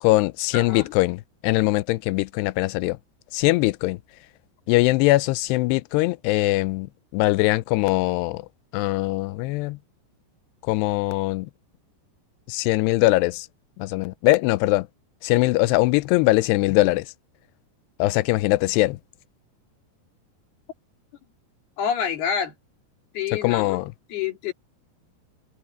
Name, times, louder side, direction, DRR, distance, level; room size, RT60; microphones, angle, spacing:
voice 1, 0.0-3.0 3.3-4.0 4.7-6.9 7.1-8.4 8.7-9.8 10.7-11.5 12.5-13.5 13.8-14.9 15.2-17.1 18.0-19.0 23.4-23.9, left 20 dB, 80° left, 2.6 m, -21 dB
voice 2, 0.5-0.9 21.8-22.5 23.1-24.5, left 8 dB, 65° left, 5.4 m, -28 dB
omnidirectional pair, 5.0 m